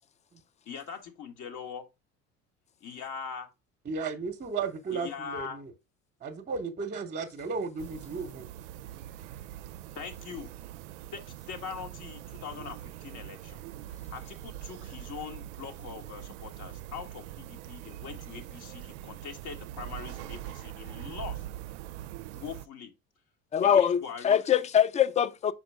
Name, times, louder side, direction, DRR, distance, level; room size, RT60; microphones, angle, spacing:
voice 1, 0.7-1.8 2.8-3.5 4.9-5.6 9.9-10.5 11.1-11.2 11.5-13.6 14.1-21.4 22.3-22.9 23.6-24.4, left 6 dB, 50° left, 1.4 m, -42 dB
voice 2, 3.8-5.7 6.2-8.5, right 4 dB, 25° right, 0.9 m, -34 dB
sound 1, 7.8-22.7, right 13 dB, 65° right, 0.5 m, -43 dB
voice 3, 23.5-25.5, left 9 dB, 20° left, 0.4 m, -23 dB
6.0 x 4.9 x 3.3 m
figure-of-eight pair, 65°, 39 cm